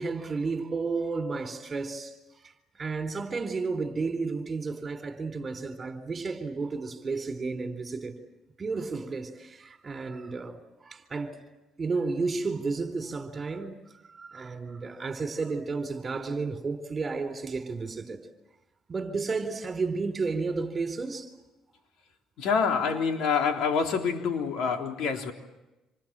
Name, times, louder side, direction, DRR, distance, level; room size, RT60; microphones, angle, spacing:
voice 1, 0.0-2.1 2.4-2.5 2.8-8.2 8.6-11.4 11.8-13.8 14.2-18.2 18.9-21.3, right 4 dB, 30° right, 4.1 m, -32 dB
voice 2, 22.4-25.3, left 6 dB, 75° left, 3.6 m, -26 dB
27.5 x 27.0 x 7.7 m
cardioid pair, 95°, 0 cm